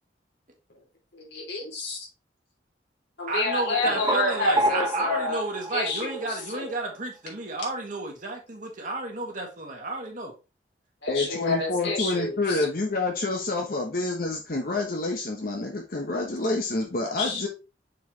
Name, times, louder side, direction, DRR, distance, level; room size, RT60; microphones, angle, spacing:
voice 1, 1.1-2.1 3.2-5.4 5.7-6.7 11.0-12.7 17.2-17.5, left 2 dB, 70° left, 3.0 m, -29 dB
voice 2, 3.3-10.3, right 2 dB, 45° right, 2.0 m, -32 dB
sound 1, 3.5-6.8, right 1 dB, 20° right, 0.8 m, -30 dB
voice 3, 11.1-17.5, left 2 dB, 50° left, 1.1 m, -28 dB
6.7 x 4.7 x 3.2 m
head